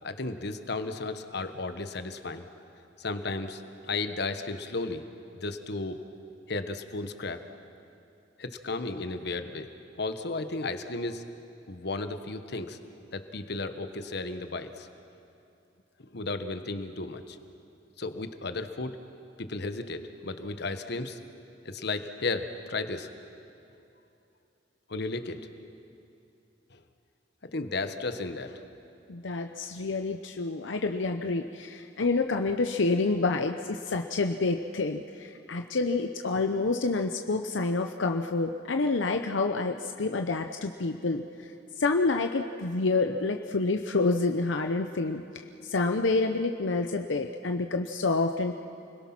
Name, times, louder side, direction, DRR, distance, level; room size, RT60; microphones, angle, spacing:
voice 1, 0.0-2.5 3.0-5.0 5.4-6.0 6.5-7.4 8.4-9.7 10.0-11.2 11.7-12.8 13.1-14.9 16.1-17.4 18.0-19.0 19.4-21.2 21.6-23.1 24.9-25.4 26.7-26.8 27.5-28.6 29.6-29.7, left 3 dB, 65° left, 9 dB, 1.2 m, -34 dB
voice 2, 29.1-41.5 41.8-45.2 45.6-48.6, left 3 dB, 85° left, 5 dB, 0.8 m, -28 dB
29.5 x 21.0 x 6.0 m, 2.7 s
head